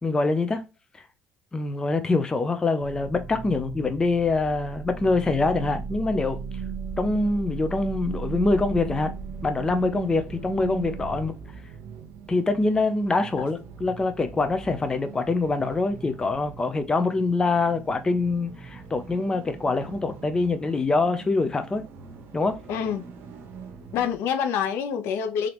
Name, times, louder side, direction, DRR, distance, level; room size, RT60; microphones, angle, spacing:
voice 1, 0.0-0.6 1.5-6.4 7.0-9.1 9.4-11.3 12.3-21.8 22.3-22.6, left 3 dB, 15° left, 0.5 m, -24 dB
sound 1, 2.8-11.3, right 5 dB, 35° right, 0.6 m, -36 dB
sound 2, 4.7-24.2, right 5 dB, 65° right, 1.1 m, -44 dB
voice 2, 22.7-23.0 23.9-25.5, left 7 dB, 80° left, 0.8 m, -26 dB
3.7 x 3.4 x 2.9 m
cardioid pair, 140°, 4 cm